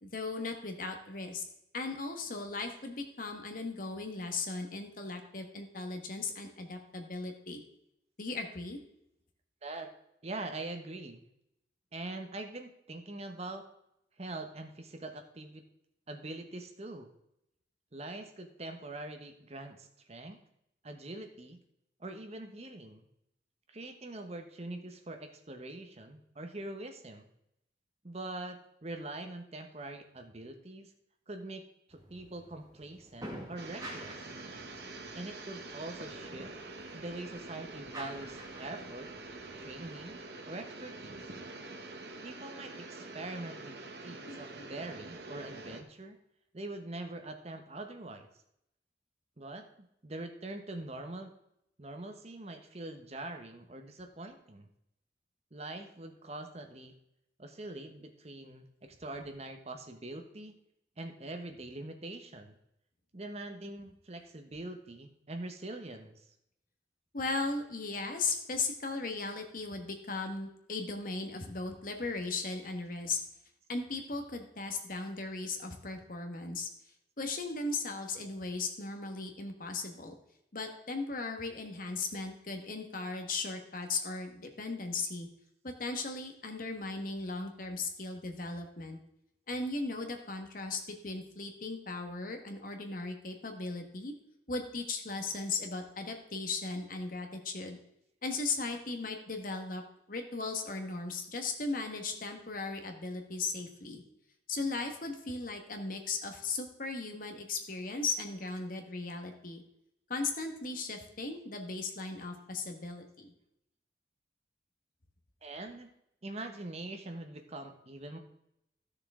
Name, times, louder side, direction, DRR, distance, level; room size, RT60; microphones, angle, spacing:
voice 1, 0.0-1.4 1.7-7.6 8.2-8.8 44.3-44.4 67.1-73.2 73.7-76.7 77.2-80.1 80.5-85.3 85.6-89.0 89.5-94.1 94.5-97.8 98.2-99.8 100.1-104.0 104.5-109.6 110.1-113.3, left 3 dB, 50° left, 5 dB, 1.3 m, -37 dB
voice 2, 10.2-11.2 11.9-13.6 14.2-15.6 16.1-17.1 17.9-20.4 20.8-21.6 22.0-23.1 23.7-27.3 28.0-30.9 31.3-34.1 35.1-36.5 36.9-39.1 39.6-40.1 40.4-41.2 42.2-46.2 46.5-48.3 49.4-51.3 51.8-54.7 55.5-56.9 57.4-60.6 61.0-62.6 63.1-66.3 115.4-115.9 116.2-118.2, right 2 dB, 35° right, 5 dB, 0.9 m, -43 dB
sound 1, 31.9-40.2, right 1 dB, 20° right, 1.8 m, -50 dB
sound 2, 33.6-45.8, right 2 dB, 65° right, 1.1 m, -46 dB
13.5 x 6.6 x 3.7 m, 0.79 s
head